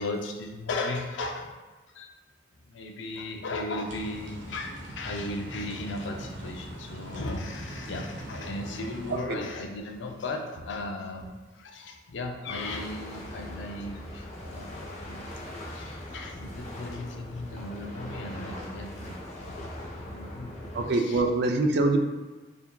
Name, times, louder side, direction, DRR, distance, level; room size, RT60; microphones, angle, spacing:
voice 1, 0.0-1.5 1.9-2.1 2.7-15.3 15.7-21.2, left 2 dB, 70° left, 3 dB, 0.5 m, -36 dB
sound 1, 3.9-9.2, right 1 dB, 80° right, 1.1 m, -41 dB
sound 2, 12.4-20.9, left 1 dB, 40° left, 0.7 m, -40 dB
voice 2, 20.7-22.0, right 2 dB, 60° right, 4 dB, 0.4 m, -24 dB
4.6 x 3.4 x 2.3 m, 1.2 s
head